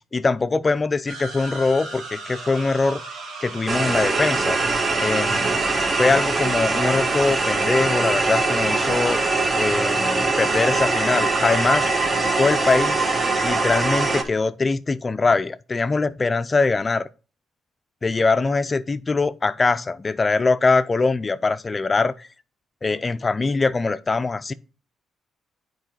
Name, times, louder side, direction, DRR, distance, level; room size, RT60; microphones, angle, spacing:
voice 1, 0.0-3.0 3.4-4.6 5.0-5.6 6.0-9.2 9.6-11.9 12.4-13.1 13.4-17.1 18.0-22.3 22.8-24.5, left 3 dB, 30° left, 0.4 m, -22 dB
sound 1, 1.1-7.0, right 3 dB, 80° right, 2.1 m, -36 dB
sound 2, 3.7-14.2, right 3 dB, 35° right, 1.3 m, -22 dB
8.0 x 4.7 x 4.5 m
cardioid pair, 90°, 0 cm